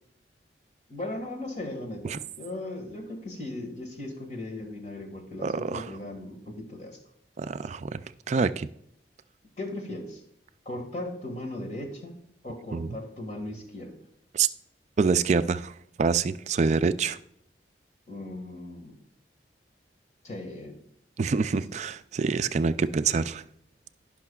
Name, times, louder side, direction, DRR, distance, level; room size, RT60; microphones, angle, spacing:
voice 1, 0.9-7.0 9.6-10.2 10.7-12.1 12.4-14.0 18.1-19.0 20.2-20.8 21.3-21.5, left 1 dB, 40° left, 1.8 m, -37 dB
voice 2, 5.4-5.9 7.4-8.0 8.3-8.7 12.7-13.0 14.3-14.5 15.0-15.7 16.0-17.2 21.2-23.4, right 5 dB, 40° right, 0.3 m, -26 dB
16.5 x 5.7 x 2.4 m
head